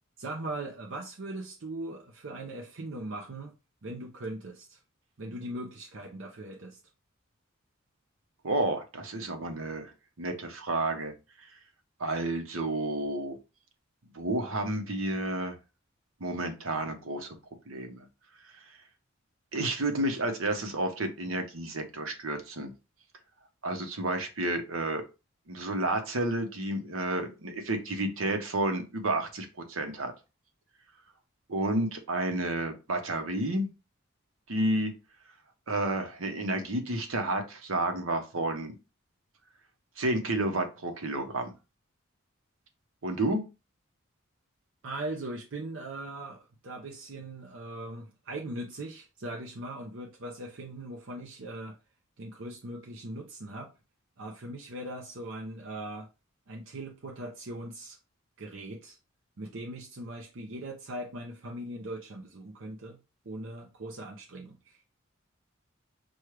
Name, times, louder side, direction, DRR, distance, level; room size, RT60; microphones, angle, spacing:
voice 1, 0.2-3.5 3.8-4.8 5.2-6.8 44.8-51.8 52.2-53.7 54.2-56.1 56.5-58.0 58.4-59.0 59.4-63.0 63.3-64.8, right 1 dB, 65° right, 0.7 m, -40 dB
voice 2, 8.4-9.9 10.2-11.1 12.0-13.3 14.1-15.5 16.2-17.4 17.7-18.1 19.5-22.7 23.6-25.0 25.5-30.1 31.5-33.7 34.5-34.9 35.7-38.7 40.0-41.5 43.0-43.4, right 2 dB, 80° right, 0.9 m, -30 dB
6.2 x 2.3 x 3.2 m
head